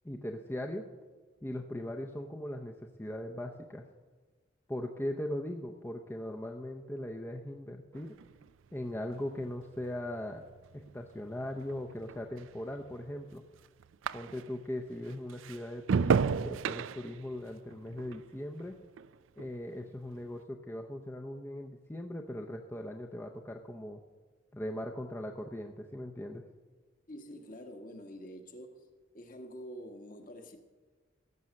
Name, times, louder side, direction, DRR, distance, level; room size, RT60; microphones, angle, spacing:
voice 1, 0.0-0.9 1.4-3.9 4.7-8.2 8.7-10.4 10.7-13.4 14.1-18.8 19.4-24.0 24.5-26.4, left 1 dB, 10° left, 0.6 m, -39 dB
sound 1, 7.9-14.7 15.1-19.6 19.9-20.4, right 6 dB, 80° right, 0.4 m, -36 dB
voice 2, 27.1-28.9 29.1-30.6, equal, 45° left, 1.4 m, -47 dB
16.5 x 7.2 x 6.4 m
head